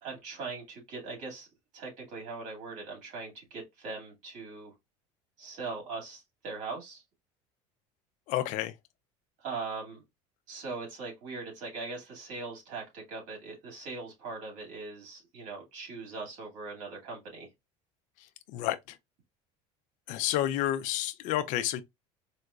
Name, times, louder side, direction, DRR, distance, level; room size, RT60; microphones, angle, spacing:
voice 1, 0.0-1.5 1.7-4.7 5.4-7.0 9.4-10.0 10.5-17.5, right 4 dB, 55° right, 2.1 m, -40 dB
voice 2, 8.3-8.7 18.5-19.0 20.1-21.8, left 13 dB, 60° left, 0.4 m, -30 dB
4.6 x 2.1 x 2.4 m
cardioid pair, 135°, 15 cm